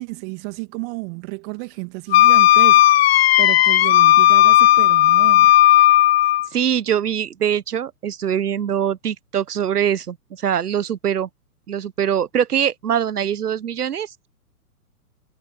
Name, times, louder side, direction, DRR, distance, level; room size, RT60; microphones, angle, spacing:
voice 1, 0.0-5.5, right 35 dB, 35° right, 2.2 m, -32 dB
Wind instrument woodwind instrument, 2.1-6.5, left 14 dB, 45° left, 0.5 m, -13 dB
voice 2, 6.5-11.3 11.7-14.3, right 9 dB, 80° right, 1.0 m, -23 dB
figure-of-eight pair, 120°, 46 cm